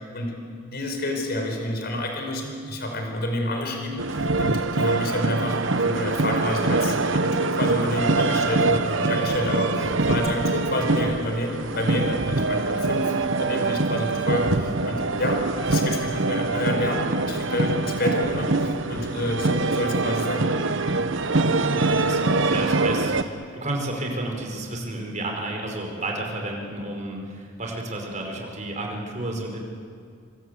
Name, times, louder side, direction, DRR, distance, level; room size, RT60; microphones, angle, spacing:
voice 1, 0.7-20.5, left 1 dB, 55° left, 3 dB, 5.0 m, -29 dB
sound 1, 4.0-23.2, right 3 dB, 70° right, 1.2 m, -24 dB
voice 2, 21.6-29.6, right 1 dB, 40° right, 1 dB, 5.4 m, -31 dB
26.5 x 25.5 x 8.3 m, 2.2 s
head